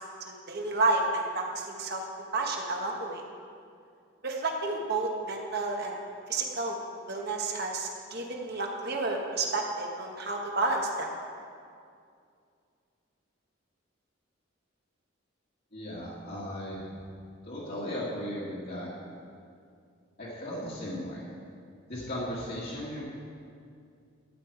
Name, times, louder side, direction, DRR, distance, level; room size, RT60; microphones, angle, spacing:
voice 1, 0.3-2.0 2.3-3.2 4.2-6.0 6.3-6.8 7.1-11.1, right 3 dB, 50° right, 0 dB, 1.3 m, -30 dB
voice 2, 15.7-16.8 17.5-18.9 20.2-21.3 21.9-23.0, equal, 50° left, -8 dB, 2.0 m, -36 dB
12.0 x 9.1 x 4.8 m, 2.3 s
head